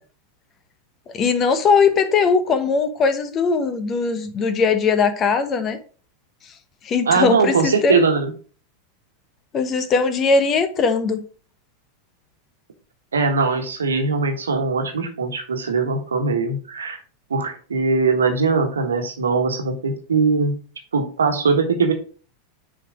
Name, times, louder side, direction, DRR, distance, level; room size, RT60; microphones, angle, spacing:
voice 1, 1.1-5.8 6.8-8.0 9.5-11.2, left 5 dB, 30° left, 10 dB, 1.0 m, -19 dB
voice 2, 7.0-8.3 13.1-17.0 17.3-20.6 20.9-21.9, right 4 dB, 75° right, 6 dB, 1.3 m, -21 dB
6.4 x 4.4 x 4.9 m, 0.40 s
figure-of-eight pair, 90°, 0 cm